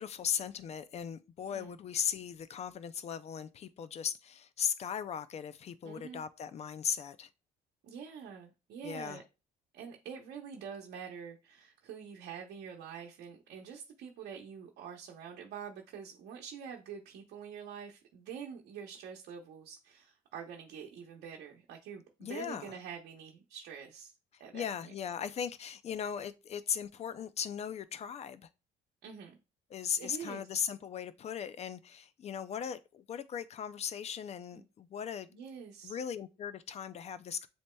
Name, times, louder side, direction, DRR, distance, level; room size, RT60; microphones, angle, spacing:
voice 1, 0.0-7.3 8.8-9.2 22.2-22.8 24.3-28.5 29.7-35.3 35.8-37.5, left 8 dB, 40° left, 0.4 m, -38 dB
voice 2, 5.8-6.2 7.8-9.2 9.7-24.1 24.4-24.9 29.0-29.4 30.0-30.5 34.5-34.6 35.3-36.0, right 7 dB, 70° right, 0.8 m, -46 dB
7.3 x 2.8 x 2.2 m
cardioid pair, 110°, 17 cm